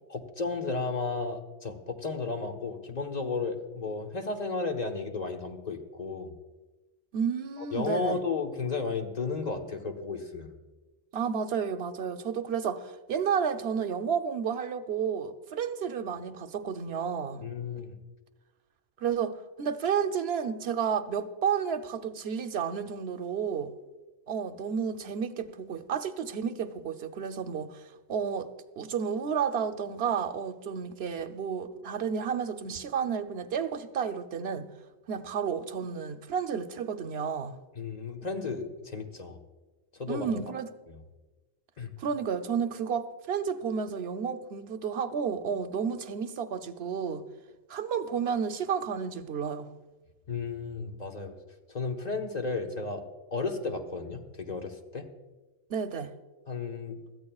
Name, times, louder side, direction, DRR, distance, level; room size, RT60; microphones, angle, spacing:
voice 1, 0.1-6.3 7.6-10.6 17.4-18.0 37.7-39.4 40.0-40.4 40.9-41.0 41.8-41.9 50.3-51.3 51.7-53.0 53.3-55.1 56.5-57.0, left 4 dB, 40° left, 1.2 m, -33 dB
voice 2, 7.1-8.2 11.1-12.8 13.1-17.4 17.7-17.8 19.0-23.7 24.3-27.8 28.1-28.5 28.8-34.7 35.1-37.5 40.1-40.7 42.0-47.2 47.7-49.7 55.7-56.1, right 7 dB, 65° right, 1.0 m, -31 dB
21.5 x 14.5 x 2.4 m
omnidirectional pair, 1.2 m